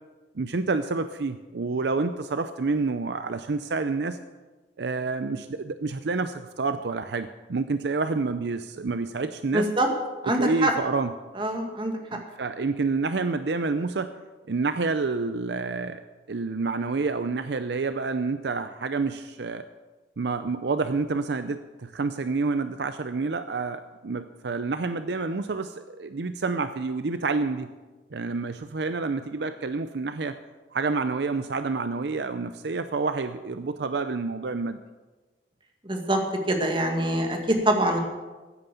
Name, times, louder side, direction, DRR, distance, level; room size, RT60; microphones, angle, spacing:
voice 1, 0.3-4.2 4.8-9.7 10.2-11.1 12.1-14.1 14.5-16.0 16.3-19.6 20.2-27.7 28.1-30.4 30.7-34.8, right 3 dB, 65° right, 10 dB, 0.6 m, -28 dB
voice 2, 9.5-9.9 10.2-10.7 11.4-11.9 35.9-36.2 36.5-38.0, right 1 dB, 25° right, 3 dB, 2.0 m, -24 dB
15.0 x 9.2 x 6.9 m, 1.2 s
head